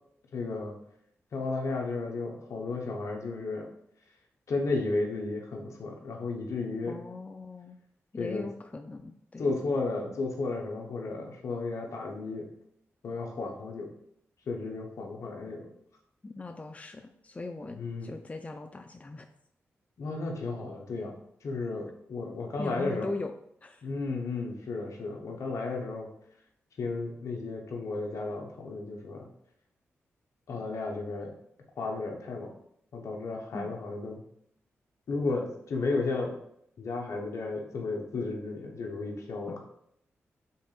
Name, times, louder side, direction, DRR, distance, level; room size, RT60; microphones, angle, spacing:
voice 1, 0.3-0.7 1.3-3.7 4.5-7.0 8.2-8.5 9.4-12.5 13.0-13.9 14.5-15.7 17.7-18.1 20.0-21.2 21.4-23.1 23.8-26.1 26.8-29.3 30.5-31.3 31.8-32.5 32.9-34.2 35.1-36.4 36.8-39.6, left 3 dB, 70° left, 1 dB, 0.9 m, -33 dB
voice 2, 6.9-7.8 8.1-9.5 16.2-19.3 22.6-23.3 23.6-23.9 33.5-33.7 39.5-39.6, left 3 dB, 25° left, 6 dB, 0.4 m, -39 dB
5.5 x 3.7 x 2.4 m, 0.71 s
supercardioid pair, 40°, 5 cm